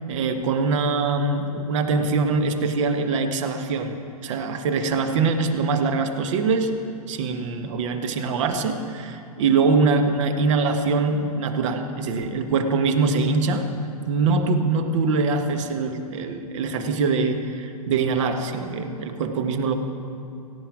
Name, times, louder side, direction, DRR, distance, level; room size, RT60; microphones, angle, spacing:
voice 1, 0.1-4.0 4.2-6.7 7.1-13.7 14.1-19.7, right 4 dB, 50° right, 6 dB, 1.5 m, -23 dB
17.5 x 16.0 x 4.9 m, 2.5 s
figure-of-eight pair, 105°, 20 cm